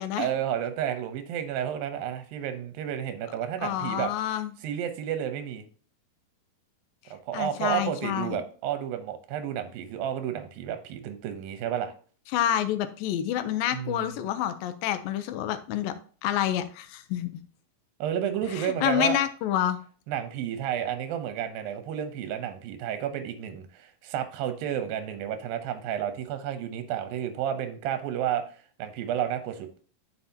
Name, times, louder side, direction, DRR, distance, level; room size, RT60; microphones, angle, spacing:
voice 1, 0.2-4.1 4.6-5.6 7.1-11.9 13.7-14.2 18.0-19.2 20.1-29.7, right 10 dB, 80° right, 9 dB, 2.6 m, -31 dB
voice 2, 3.6-4.5 7.3-8.4 12.3-15.9 16.2-17.4 18.5-19.8, left 11 dB, 80° left, 10 dB, 2.3 m, -28 dB
10.0 x 5.7 x 2.8 m, 0.42 s
omnidirectional pair, 4.2 m